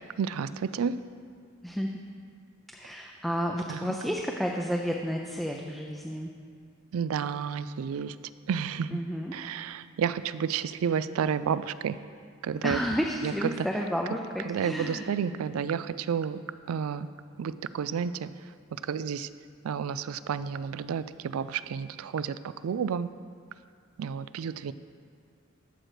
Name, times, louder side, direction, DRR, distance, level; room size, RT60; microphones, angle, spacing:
voice 1, 0.2-0.9 3.7-3.8 6.9-8.1 8.5-9.0 9.3-12.0 12.4-12.8 13.6-13.7 14.5-16.4 16.7-17.1 17.4-18.3 18.9-19.3 19.6-22.4 22.6-23.1 24.0-24.7, right 7 dB, 80° right, 15 dB, 0.3 m, -30 dB
voice 2, 1.6-2.0 2.7-6.3 8.9-9.4 12.6-15.0, equal, ahead, 0 dB, 0.5 m, -31 dB
11.5 x 6.5 x 4.9 m, 2.1 s
head